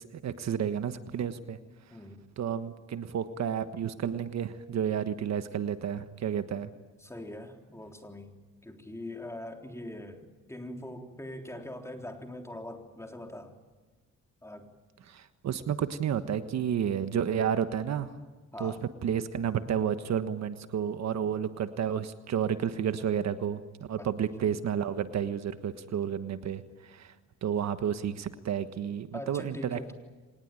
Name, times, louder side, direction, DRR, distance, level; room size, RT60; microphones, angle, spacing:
voice 1, 0.0-1.6 2.4-6.7 15.1-18.1 18.6-18.7 19.0-27.1 27.4-29.9, right 8 dB, 65° right, 10 dB, 1.4 m, -31 dB
voice 2, 1.9-2.3 7.0-8.3 8.6-13.5 14.4-14.7 18.5-18.8 24.0-24.5 29.1-29.9, left 1 dB, 10° left, 3 dB, 3.7 m, -42 dB
25.5 x 19.5 x 9.1 m, 1.3 s
cardioid pair, 90°, 30 cm